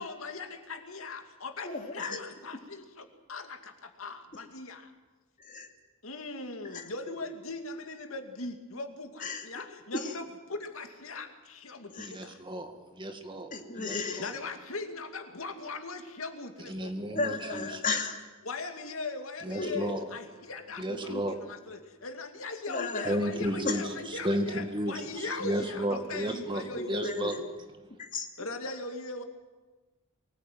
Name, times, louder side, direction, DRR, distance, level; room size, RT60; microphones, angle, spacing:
voice 1, 0.0-4.9 6.0-12.4 14.2-17.0 17.5-17.7 18.4-27.4 28.4-29.2, left 3 dB, 75° left, 6 dB, 2.5 m, -40 dB
voice 2, 1.6-2.2 5.4-5.7 6.7-6.8 9.2-9.7 9.9-10.1 11.9-12.1 13.5-14.2 17.1-18.2 19.6-19.8 20.9-21.2 22.7-23.1 23.6-23.8 26.7-27.4 27.9-28.3, left 3 dB, 40° left, 4 dB, 2.7 m, -34 dB
voice 3, 12.0-13.5 13.8-14.3 16.7-17.8 19.4-20.1 20.8-21.4 23.1-27.3, equal, 25° right, 6 dB, 1.9 m, -33 dB
24.0 x 19.0 x 9.3 m, 1.2 s
head